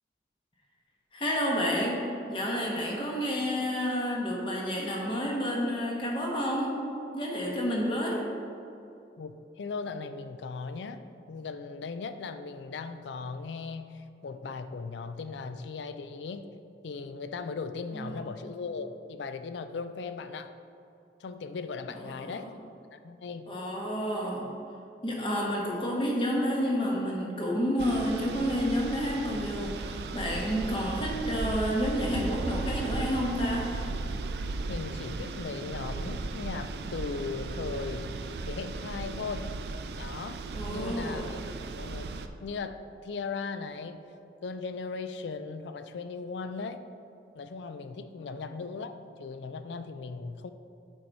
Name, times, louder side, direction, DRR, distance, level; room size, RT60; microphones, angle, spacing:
voice 1, 1.1-2.0 2.3-6.8 7.1-8.2 17.9-18.5 22.1-22.5 23.5-24.5 25.0-33.7 40.5-41.3 48.2-48.4, equal, 30° left, -2 dB, 1.1 m, -30 dB
voice 2, 9.2-16.5 16.8-20.5 21.2-22.5 22.9-23.5 34.7-38.2 38.5-39.5 40.0-40.4 40.7-41.4 41.8-42.1 42.4-44.0 44.4-46.8 47.4-48.9 49.2-50.5, left 4 dB, 80° left, 10 dB, 0.4 m, -38 dB
sound 1, 27.8-42.3, right 3 dB, 65° right, 0.4 m, -36 dB
7.6 x 4.7 x 4.0 m, 2.6 s
head